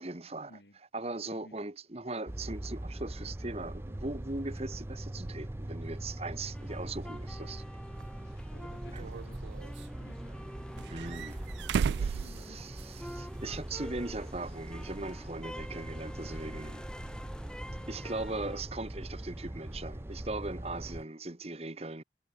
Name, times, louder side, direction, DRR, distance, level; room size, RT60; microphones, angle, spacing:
voice 1, 0.0-0.5 0.9-7.6 8.9-9.2 10.9-11.5 12.0-16.9 17.9-22.0, right 2 dB, 35° right, 1.6 m, -39 dB
sound 1, 2.3-21.0, right 1 dB, 15° right, 0.4 m, -42 dB
sound 2, 6.5-18.6, equal, 5° left, 7.8 m, -48 dB
sound 3, 8.0-8.1 9.0-9.9 10.8-13.1 13.4-13.5 15.1-15.2, right 6 dB, 75° right, 0.3 m, -34 dB
voice 2, 8.2-10.5 11.8-12.6, left 1 dB, 75° left, 5.9 m, -56 dB
head